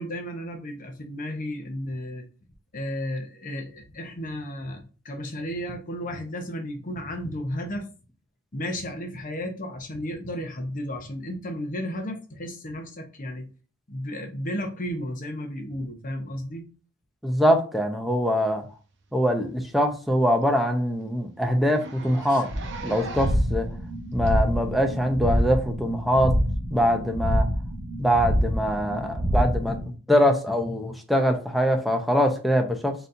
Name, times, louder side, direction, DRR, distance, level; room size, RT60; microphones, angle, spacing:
voice 1, 0.0-2.3 2.7-7.9 8.5-13.5 13.9-16.7 22.3-22.4, equal, 40° left, 5 dB, 0.9 m, -33 dB
voice 2, 17.2-18.6 19.1-22.5 22.8-23.7 24.1-26.3 26.7-27.5 28.0-32.9, equal, ahead, 4 dB, 0.6 m, -23 dB
Zipper (clothing), 18.9-19.1 19.5-19.6 19.9-20.0 20.4-20.5 20.7-20.9 21.6-23.5 24.3-24.4 25.4-25.5, right 3 dB, 60° right, 0.8 m, -41 dB
sound 1, 22.5-29.9, equal, 80° right, 1.2 m, -26 dB
4.1 x 4.1 x 2.6 m, 0.36 s
head